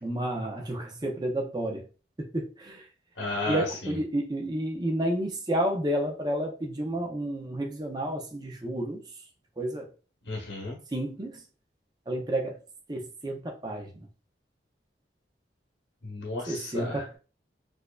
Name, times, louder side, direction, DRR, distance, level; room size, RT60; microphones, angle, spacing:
voice 1, 0.0-1.9 2.2-2.9 3.5-9.0 9.6-9.9 10.9-11.4 12.1-12.6 12.9-14.1 16.5-17.2, right 1 dB, 20° right, 0.5 m, -31 dB
voice 2, 3.2-4.0 10.2-10.8 16.0-17.0, left 2 dB, 75° left, 0.8 m, -33 dB
4.4 x 2.5 x 2.2 m
head